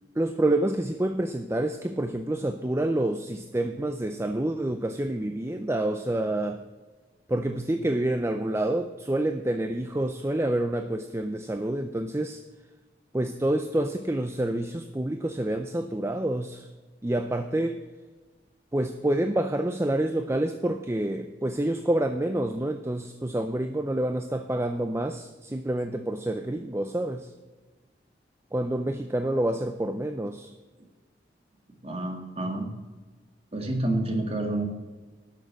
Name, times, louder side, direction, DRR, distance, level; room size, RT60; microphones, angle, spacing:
voice 1, 0.2-6.6 7.3-12.4 13.1-16.7 17.0-17.8 18.7-27.3 28.5-30.5, right 1 dB, 15° right, 7 dB, 0.5 m, -28 dB
voice 2, 31.8-32.7 33.5-34.7, right 1 dB, 35° right, 3 dB, 2.0 m, -28 dB
11.5 x 6.6 x 7.5 m, 1.3 s
head